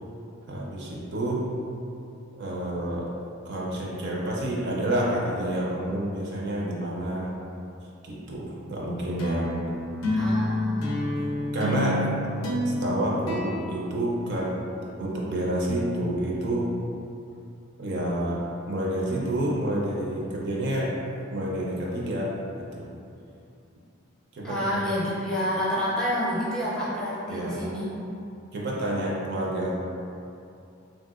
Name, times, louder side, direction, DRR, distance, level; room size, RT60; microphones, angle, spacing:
voice 1, 0.5-1.4 2.3-7.3 8.0-9.6 11.5-12.0 12.7-14.5 15.0-16.7 17.8-18.4 18.6-22.9 24.3-24.8 27.3-27.6 28.5-29.7, right 1 dB, 55° right, -4 dB, 0.4 m, -29 dB
sound 1, 9.2-14.8, left 1 dB, 75° left, 0.4 m, -29 dB
voice 2, 10.1-11.1 24.4-28.0, equal, 5° left, -9 dB, 0.5 m, -28 dB
3.3 x 2.6 x 2.3 m, 2.7 s
head